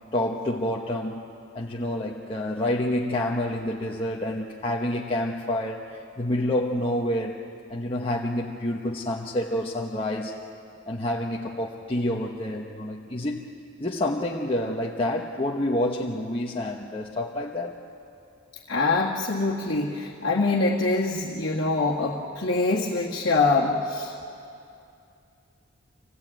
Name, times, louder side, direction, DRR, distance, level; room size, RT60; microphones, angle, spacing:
voice 1, 0.1-1.3 1.5-10.3 10.9-13.4 13.8-17.8, left 1 dB, 25° left, -2 dB, 1.1 m, -28 dB
voice 2, 18.7-24.1, left 3 dB, 55° left, -4 dB, 1.8 m, -24 dB
26.0 x 18.0 x 9.1 m, 2.5 s
head